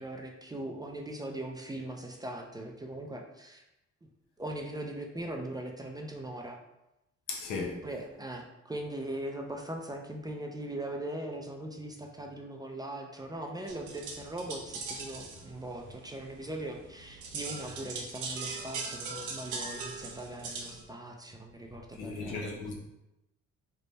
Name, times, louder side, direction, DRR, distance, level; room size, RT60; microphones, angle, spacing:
voice 1, 0.0-3.6 4.0-4.1 4.4-6.6 7.8-22.4, right 1 dB, 15° right, 0.4 m, -40 dB
voice 2, 7.3-7.8 22.0-22.7, left 4 dB, 90° left, 0.8 m, -36 dB
sound 1, 13.7-20.8, right 4 dB, 80° right, 0.7 m, -41 dB
3.4 x 2.1 x 3.9 m
cardioid pair, 90°, 30 cm